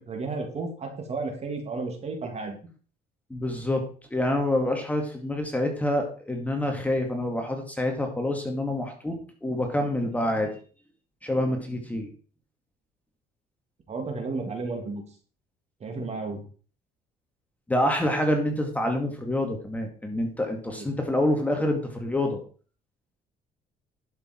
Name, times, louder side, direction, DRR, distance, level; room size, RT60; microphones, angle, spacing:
voice 1, 0.0-2.6 13.9-15.0 15.8-16.4 20.7-20.9, right 3 dB, 40° right, 4 dB, 2.9 m, -33 dB
voice 2, 3.3-10.5 11.2-12.1 17.7-22.4, left 1 dB, 10° left, 3 dB, 2.2 m, -27 dB
11.5 x 6.9 x 4.6 m, 0.40 s
cardioid pair, 110°, 17 cm